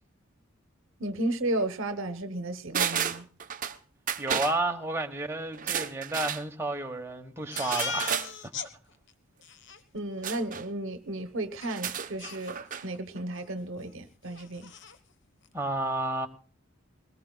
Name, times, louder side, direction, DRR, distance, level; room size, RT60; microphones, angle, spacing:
voice 1, 1.0-3.3 9.9-14.7, right 1 dB, 65° right, 1.0 m, -33 dB
sound 1, 2.7-3.8 4.1-4.6 5.5-6.4 7.6-8.3 10.2-10.6 11.6-12.9 13.2-13.3, right 8 dB, 40° right, 0.8 m, -32 dB
voice 2, 4.2-8.2 15.5-16.3, right 2 dB, 10° right, 1.3 m, -31 dB
Crying sobbing, 7.5-8.7 9.1-9.2 9.4-9.8 11.6-11.7 12.2-13.0 13.3-13.5 13.8-13.9 14.3-15.0, left 5 dB, 60° left, 1.2 m, -38 dB
21.5 x 18.5 x 2.3 m
head